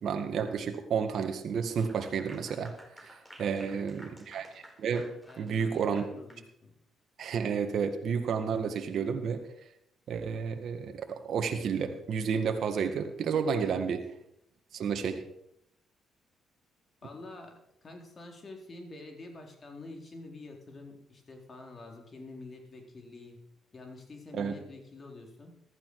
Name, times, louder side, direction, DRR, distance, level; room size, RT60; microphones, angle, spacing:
voice 1, 0.0-2.7 3.0-3.1 3.4-6.0 7.2-9.4 10.1-14.0 14.7-15.2 24.3-24.6, right 6 dB, 65° right, 6 dB, 1.8 m, -31 dB
Clapping / Applause, 1.6-6.5, equal, 5° left, 4.7 m, -53 dB
voice 2, 3.4-4.3 5.2-6.7 13.6-13.9 17.0-23.4 23.7-25.6, left 2 dB, 45° left, 2 dB, 4.1 m, -47 dB
15.0 x 13.5 x 4.9 m, 0.76 s
supercardioid pair, 55°, 0 cm